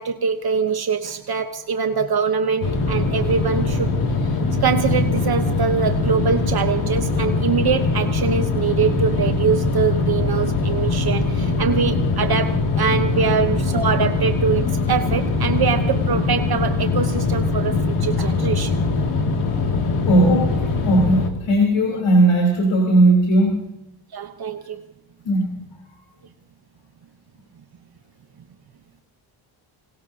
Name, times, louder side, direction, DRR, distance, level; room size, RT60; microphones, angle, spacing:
voice 1, 0.0-3.9 4.2-4.3 4.6-18.8 21.9-22.0 24.1-24.9, right 6 dB, 45° right, 7 dB, 1.0 m, -23 dB
sound 1, 2.6-21.3, left 3 dB, 90° left, 2.5 m, -22 dB
voice 2, 20.1-23.6 25.3-25.6, right 1 dB, 60° left, 1 dB, 3.7 m, -17 dB
25.5 x 19.5 x 2.8 m, 0.83 s
cardioid pair, 110°, 50 cm